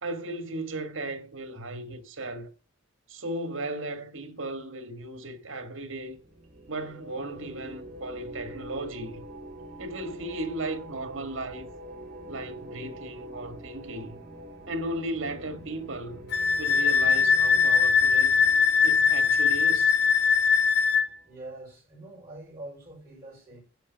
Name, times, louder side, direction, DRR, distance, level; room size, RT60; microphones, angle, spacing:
voice 1, 0.0-2.5 3.1-6.2 6.7-9.2 9.8-11.7 12.3-14.2 14.7-16.3 16.6-18.4 18.8-20.0, right 1 dB, 70° right, 1.8 m, -36 dB
sound 1, 6.0-21.4, right 1 dB, 40° right, 3.0 m, -45 dB
Wind instrument woodwind instrument, 16.3-21.1, left 6 dB, 50° left, 0.6 m, -21 dB
voice 2, 21.2-23.6, right 2 dB, 15° right, 5.5 m, -44 dB
10.5 x 5.3 x 6.9 m
head